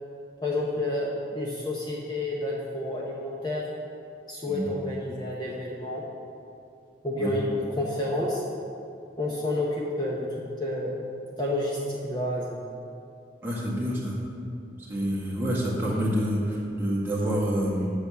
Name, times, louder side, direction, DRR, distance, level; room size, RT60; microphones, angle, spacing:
voice 1, 0.4-3.6 4.3-6.0 7.0-8.4 9.2-10.3 10.6-11.0 11.4-12.6, left 1 dB, 25° left, -4 dB, 0.9 m, -29 dB
voice 2, 13.4-14.2 14.9-17.9, equal, 10° right, -6 dB, 1.7 m, -27 dB
8.3 x 6.2 x 7.0 m, 2.5 s
head